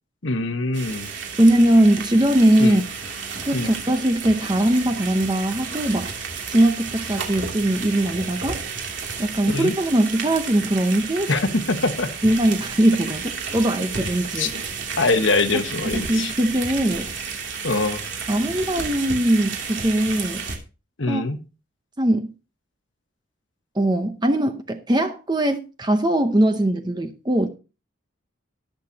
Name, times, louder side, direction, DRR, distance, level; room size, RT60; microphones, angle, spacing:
voice 1, 0.2-1.1 2.6-2.8 3.5-3.7 9.5-9.7 11.3-12.1 14.3-14.5 15.0-16.3 17.6-18.0 21.0-21.4, left 3 dB, 65° left, 1.2 m, -23 dB
sound 1, 0.7-20.6, right 5 dB, 60° right, 2.8 m, -32 dB
voice 2, 1.4-2.8 3.4-6.1 6.5-8.6 9.2-11.3 12.2-14.5 15.5-15.6 15.9-17.1 18.3-20.4 21.1-21.2 22.0-22.3 23.7-27.5, right 1 dB, 20° right, 0.7 m, -20 dB
19.5 x 6.8 x 2.8 m
head